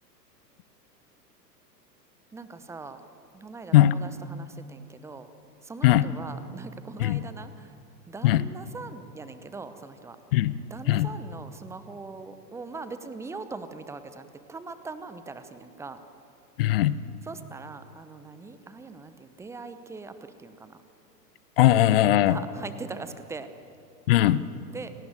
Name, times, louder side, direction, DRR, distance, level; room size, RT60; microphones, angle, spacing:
voice 1, 2.3-3.0 3.3-5.3 5.6-7.7 8.1-10.2 10.7-16.0 17.3-20.8 22.3-23.5 24.7-24.9, right 4 dB, 5° right, 11 dB, 0.8 m, -41 dB
voice 2, 16.6-17.0 21.6-22.4 24.1-24.4, left 13 dB, 35° left, 17 dB, 0.8 m, -19 dB
28.0 x 18.5 x 9.1 m, 2.6 s
figure-of-eight pair, 105°, 50 cm